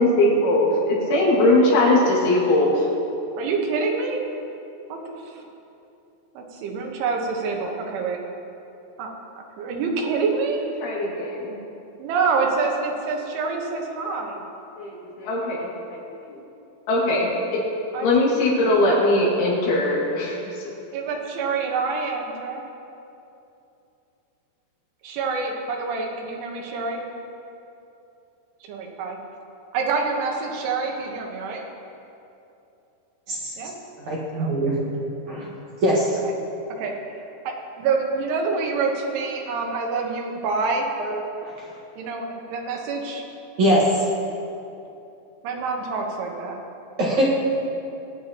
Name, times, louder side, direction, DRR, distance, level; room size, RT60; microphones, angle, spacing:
voice 1, 0.0-2.8 10.8-11.6 14.8-16.4 16.9-17.4 18.0-20.7, left 1 dB, 80° left, -5 dB, 4.8 m, -20 dB
voice 2, 3.4-4.2 4.9-5.4 6.4-8.2 9.0-9.1 9.6-10.7 12.0-14.4 17.9-18.1 20.9-22.6 25.0-27.0 28.6-29.2 29.7-31.6 33.6-33.7 34.3-34.5 36.8-36.9 37.5-40.9 42.0-43.3 45.4-46.6, right 4 dB, 90° right, 1 dB, 3.7 m, -26 dB
voice 3, 33.3-33.7 34.1-34.8 35.3-35.5 35.8-36.2 41.0-41.1 41.4-41.5 43.6-43.8 47.0-47.3, right 1 dB, 55° right, -6 dB, 2.2 m, -22 dB
23.0 x 9.0 x 3.0 m, 2.8 s
omnidirectional pair, 5.4 m